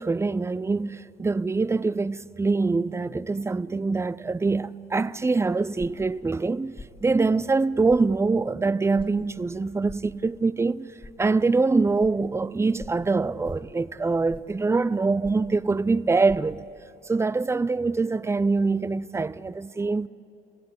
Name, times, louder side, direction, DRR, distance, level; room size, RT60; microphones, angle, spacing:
voice 1, 0.0-10.9 11.2-16.6 17.1-20.1, right 3 dB, 15° right, 0.4 m, -24 dB
sound 1, 5.8-6.1 6.8-7.0 7.9-8.1 9.0-9.1 9.9-10.1 11.0-11.1 12.0-12.1 12.8-13.0 13.4-13.7 14.3-14.6 15.2-15.5 16.3-16.4, left 2 dB, 25° left, 1.7 m, -43 dB
29.5 x 16.5 x 8.0 m
cardioid pair, 90°, 20 cm